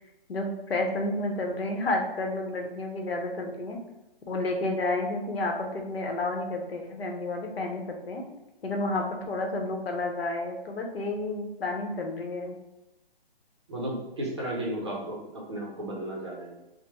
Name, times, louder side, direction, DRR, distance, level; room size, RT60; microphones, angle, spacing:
voice 1, 0.3-3.8 4.3-8.2 8.6-12.6, left 2 dB, 75° left, 2 dB, 0.9 m, -30 dB
voice 2, 13.7-16.5, right 1 dB, 30° right, -3 dB, 0.6 m, -34 dB
3.4 x 2.1 x 2.9 m, 0.94 s
hypercardioid pair, 170°, 30 cm